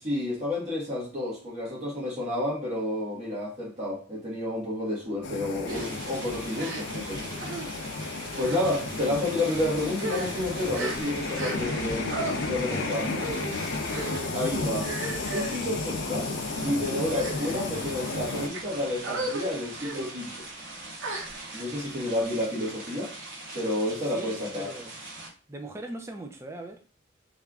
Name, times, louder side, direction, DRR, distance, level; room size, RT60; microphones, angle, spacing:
voice 1, 0.0-7.2 8.4-12.1 12.4-13.2 14.3-14.9 15.3-16.3 16.6-20.5 21.5-23.1 23.5-24.8, left 1 dB, 35° right, -4 dB, 1.4 m, -30 dB
sound 1, 5.2-18.5, left 3 dB, 65° left, 0.5 m, -33 dB
sound 2, 5.6-5.9 6.5-7.1 7.4-7.7 8.4-8.6 9.3-9.5 9.9-11.8 12.1-12.3 13.1-13.5 13.9-14.2 14.8-15.6 16.3-16.5 17.0-17.7 18.3-18.6 19.0-19.4 19.8-20.0 21.0-21.7, right 2 dB, 75° right, 0.9 m, -35 dB
sound 3, 5.7-25.3, right 2 dB, 60° right, 1.3 m, -42 dB
voice 2, 24.0-24.9 25.5-26.8, right 2 dB, 15° right, 3 dB, 0.5 m, -40 dB
3.3 x 2.4 x 3.5 m, 0.38 s
head